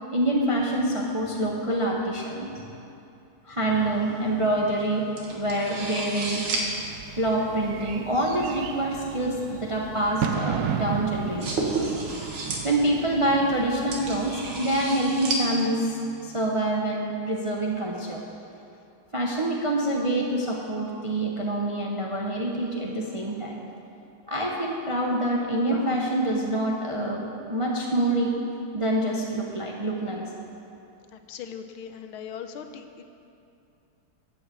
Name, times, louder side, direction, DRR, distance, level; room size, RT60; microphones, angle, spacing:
voice 1, 0.1-2.5 3.5-5.1 5.3-6.4 7.2-11.6 12.6-18.2 19.1-23.6 24.3-28.3 28.7-30.3, right 1 dB, 30° right, -2 dB, 0.5 m, -26 dB
sound 1, 3.7-16.5, right 2 dB, 85° right, 2.3 m, -35 dB
Bird / Fireworks, 6.2-15.4, right 7 dB, 65° right, 1.0 m, -35 dB
voice 2, 31.1-33.0, left 7 dB, 85° left, 7 dB, 1.6 m, -39 dB
13.0 x 5.6 x 8.4 m, 2.6 s
omnidirectional pair, 2.2 m